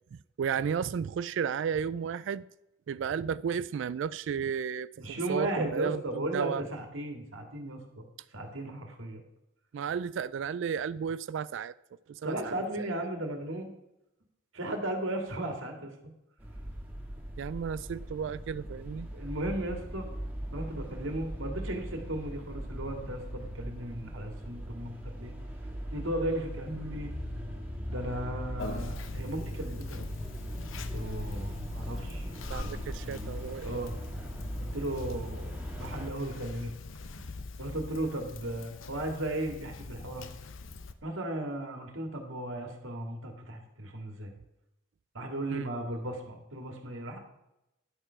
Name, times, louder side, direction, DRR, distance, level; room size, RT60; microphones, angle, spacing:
voice 1, 0.1-2.5 2.9-6.6 9.7-11.7 12.1-12.5 17.4-19.1 32.5-33.8 45.5-45.7, right 7 dB, 70° right, 17 dB, 0.3 m, -33 dB
voice 2, 5.0-8.1 8.3-9.2 12.2-13.7 14.5-15.9 19.1-20.1 20.5-25.3 25.9-27.1 27.9-30.0 30.9-32.3 32.5-33.3 33.6-33.9 34.6-36.7 37.6-40.3 41.0-44.3 45.1-47.2, right 1 dB, 85° right, 3 dB, 2.1 m, -36 dB
sound 1, 16.4-36.1, equal, 10° right, 1.7 m, -39 dB
Conversation, 28.6-40.9, left 3 dB, 80° left, 0.8 m, -43 dB
11.0 x 6.7 x 5.7 m, 0.90 s
head